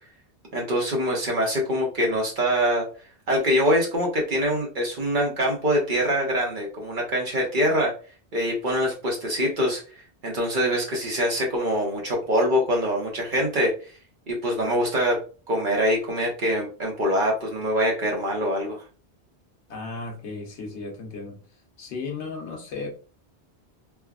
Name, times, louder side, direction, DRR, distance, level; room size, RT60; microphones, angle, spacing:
voice 1, 0.5-2.9 3.3-7.9 8.3-9.8 10.2-13.7 14.3-15.2 15.5-18.8, equal, 50° right, 0 dB, 0.9 m, -24 dB
voice 2, 19.7-21.4 21.8-23.1, left 3 dB, 85° left, 2 dB, 1.1 m, -35 dB
3.3 x 2.0 x 2.3 m, 0.36 s
omnidirectional pair, 1.1 m